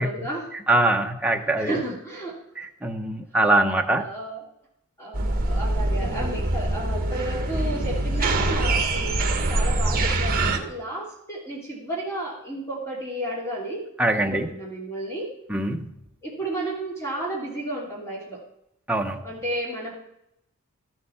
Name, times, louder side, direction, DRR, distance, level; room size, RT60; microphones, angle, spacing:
voice 1, 0.0-0.5 1.4-2.4 4.0-4.4 5.0-13.8 14.1-15.3 16.2-18.4 19.2-20.0, right 1 dB, 15° left, -5 dB, 2.8 m, -32 dB
voice 2, 0.7-1.8 2.6-4.1 14.0-14.5 15.5-15.9 18.9-19.2, right 2 dB, 5° right, 3 dB, 0.9 m, -23 dB
sound 1, 5.1-10.6, right 2 dB, 40° right, 1.5 m, -24 dB
13.5 x 7.9 x 5.7 m, 0.79 s
head